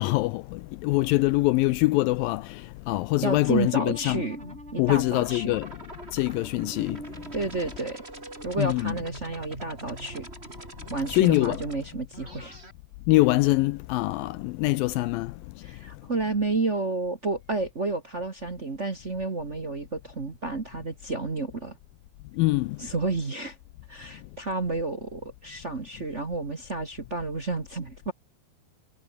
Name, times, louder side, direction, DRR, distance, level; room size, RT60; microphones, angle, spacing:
voice 1, 0.0-4.2 4.8-5.7 6.1-7.0 8.6-9.0 11.1-11.6 13.1-15.3 22.4-22.8, left 20 dB, 85° left, 2.0 m, -24 dB
voice 2, 3.2-4.4 4.7-5.5 7.3-8.0 8.4-10.3 10.9-12.6 15.6-21.8 22.8-23.5 23.9-28.1, right 3 dB, 55° right, 0.7 m, -31 dB
sound 1, 3.4-12.7, right 2 dB, 15° right, 5.5 m, -43 dB
omnidirectional pair, 4.7 m